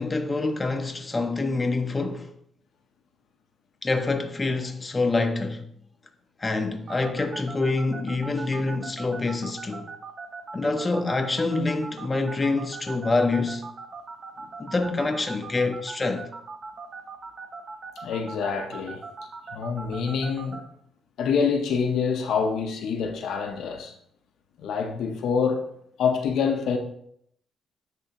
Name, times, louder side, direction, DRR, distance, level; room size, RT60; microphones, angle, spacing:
voice 1, 0.0-2.3 3.8-5.6 6.4-9.9 10.5-13.6 14.6-16.3, left 3 dB, 25° left, 0.7 m, -26 dB
sound 1, 6.9-20.6, right 4 dB, 50° right, 0.7 m, -39 dB
voice 2, 18.0-19.0 19.5-20.6 21.2-23.9 24.6-25.6 26.0-26.8, left 6 dB, 75° left, 0.7 m, -26 dB
10.0 x 3.4 x 2.9 m
cardioid pair, 90°, 0 cm